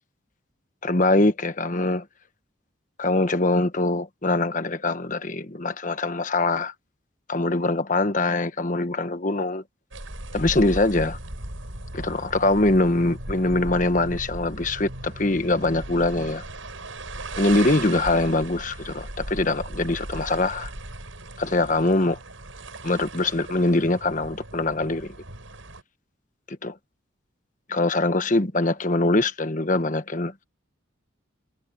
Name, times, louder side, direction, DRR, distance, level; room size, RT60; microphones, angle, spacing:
voice 1, 0.8-2.0 3.0-6.7 7.3-9.6 10.3-11.2 11.9-16.4 17.4-20.7 21.4-22.2 22.8-25.1 26.5-26.8 27.7-30.3, left 2 dB, 40° left, 1.3 m, -23 dB
sound 1, 9.9-25.8, right 2 dB, 80° right, 6.9 m, -37 dB
head